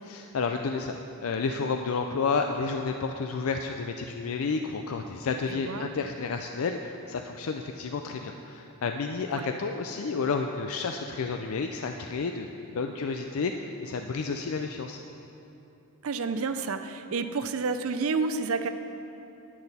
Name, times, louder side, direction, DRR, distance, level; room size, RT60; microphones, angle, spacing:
voice 1, 0.0-15.0, left 4 dB, 70° left, 5 dB, 0.4 m, -31 dB
voice 2, 5.5-5.9 9.3-9.5 16.0-18.7, right 4 dB, 65° right, 9 dB, 0.5 m, -30 dB
10.5 x 10.0 x 4.2 m, 2.9 s
head